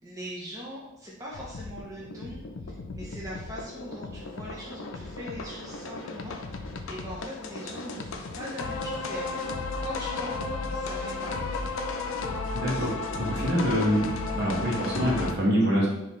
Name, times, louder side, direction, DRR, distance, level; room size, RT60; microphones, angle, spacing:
voice 1, 0.0-2.4 2.9-11.6, equal, 15° right, -6 dB, 0.7 m, -41 dB
sound 1, 1.3-15.3, left 3 dB, 85° left, 0.5 m, -34 dB
voice 2, 12.5-12.9 13.2-14.0 14.3-15.9, equal, 55° right, -4 dB, 1.3 m, -25 dB
5.5 x 2.8 x 3.2 m, 0.90 s
head